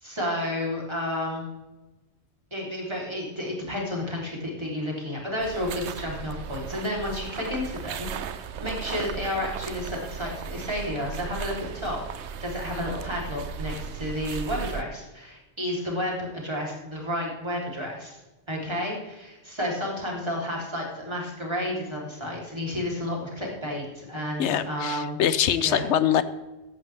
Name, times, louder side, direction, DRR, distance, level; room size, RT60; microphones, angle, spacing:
voice 1, 0.0-1.5 2.5-18.2 18.5-25.2 25.6-25.8, left 1 dB, 25° right, -3 dB, 3.3 m, -31 dB
sound 1, 5.4-14.8, right 7 dB, 85° right, 1.0 m, -36 dB
voice 2, 24.4-26.2, left 9 dB, 85° left, 14 dB, 1.0 m, -23 dB
15.5 x 10.5 x 3.3 m, 1.1 s
omnidirectional pair, 1.1 m